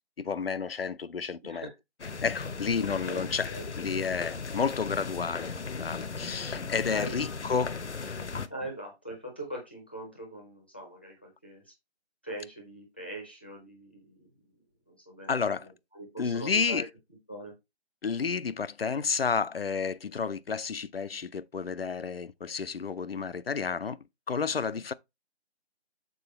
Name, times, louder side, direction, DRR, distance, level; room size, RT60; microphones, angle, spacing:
voice 1, 0.2-1.7 2.2-3.5 3.8-8.3 15.3-15.7 16.2-16.9 18.0-24.9, left 5 dB, 60° left, 0.5 m, -31 dB
voice 2, 1.4-1.7 3.1-3.7 6.9-7.3 8.1-11.7 12.2-14.3 14.9-16.8 17.3-17.5 24.7-24.8, right 1 dB, 10° left, 0.7 m, -42 dB
sound 1, 2.0-8.5, left 4 dB, 80° left, 0.9 m, -37 dB
7.0 x 4.5 x 4.1 m
figure-of-eight pair, 165°, 34 cm